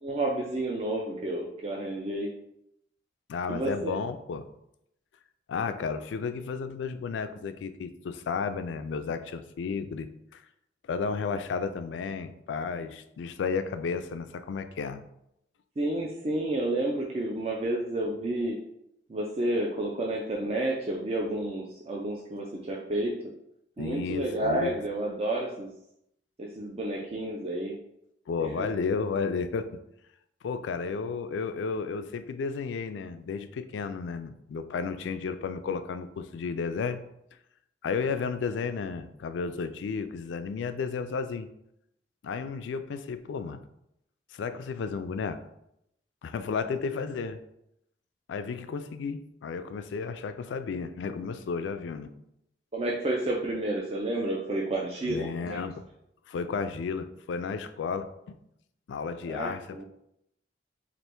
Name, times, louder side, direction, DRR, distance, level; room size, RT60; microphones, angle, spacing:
voice 1, 0.0-2.3 3.5-4.0 15.8-18.6 19.1-23.1 23.8-25.7 26.4-27.8 28.4-28.7 52.7-55.6 59.3-59.8, right 1 dB, 35° right, -1 dB, 0.4 m, -30 dB
voice 2, 3.3-4.5 5.5-10.4 10.9-15.0 23.8-24.8 28.3-29.7 30.4-37.0 37.8-41.5 42.2-43.6 44.3-45.4 46.2-47.4 48.3-52.1 55.0-55.8 56.3-58.4 58.9-59.8, left 5 dB, 85° left, 10 dB, 0.3 m, -33 dB
3.3 x 2.5 x 4.3 m, 0.79 s
head